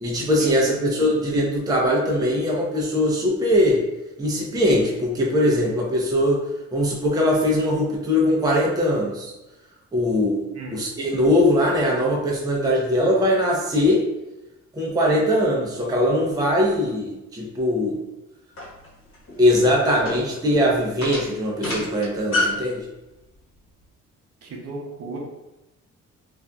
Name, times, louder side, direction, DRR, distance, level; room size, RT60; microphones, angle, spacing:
voice 1, 0.0-3.8 4.2-6.4 6.7-9.3 9.9-10.4 10.7-14.0 14.7-18.0 19.4-22.9, left 1 dB, 15° right, -3 dB, 0.5 m, -21 dB
sound 1, 18.6-22.7, left 2 dB, 45° left, 1.1 m, -28 dB
voice 2, 24.4-25.2, right 3 dB, 55° right, -1 dB, 0.7 m, -35 dB
2.5 x 2.4 x 2.2 m, 0.97 s
cardioid pair, 90°, 30 cm